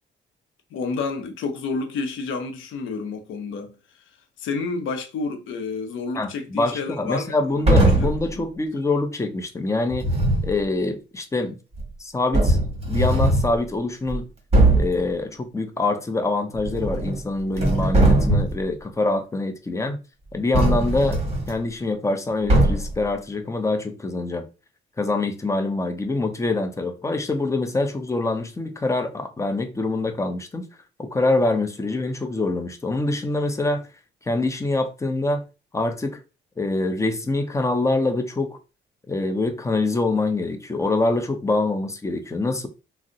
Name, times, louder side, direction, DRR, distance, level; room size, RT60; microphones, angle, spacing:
voice 1, 0.7-3.7 4.4-8.1 8.4-8.5 21.0-21.1, left 4 dB, 80° left, 0.7 m, -30 dB
voice 2, 6.1-10.1 10.4-11.6 12.0-12.6 12.9-14.3 14.8-20.0 20.3-21.2 21.5-24.5 25.0-30.7 31.0-33.9 34.3-35.4 35.7-36.2 36.6-38.6 39.1-42.7, left 2 dB, 15° left, 0.5 m, -25 dB
sound 1, 7.6-8.3 9.9-10.5 11.8-11.9 12.3-13.5 14.1-14.2 14.5-15.0 16.6-17.2 17.5-18.6 20.5-21.5 22.5-23.0, right 1 dB, 30° right, 1.2 m, -19 dB
2.5 x 2.0 x 3.7 m
cardioid pair, 90°, 20 cm